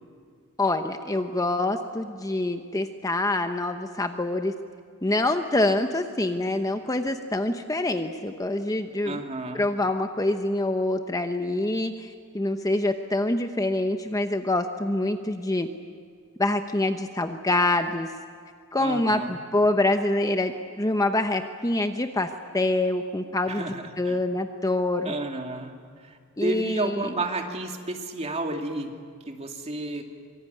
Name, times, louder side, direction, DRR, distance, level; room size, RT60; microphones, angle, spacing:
voice 1, 0.6-4.5 5.0-9.2 9.5-15.7 16.4-18.1 18.7-25.1 26.4-27.1, left 2 dB, 15° left, 7 dB, 0.9 m, -26 dB
voice 2, 9.0-9.6 18.8-19.4 23.5-24.2 25.0-29.0 29.3-30.0, right 2 dB, 30° right, 3 dB, 2.5 m, -32 dB
25.5 x 24.0 x 9.4 m, 2.1 s
head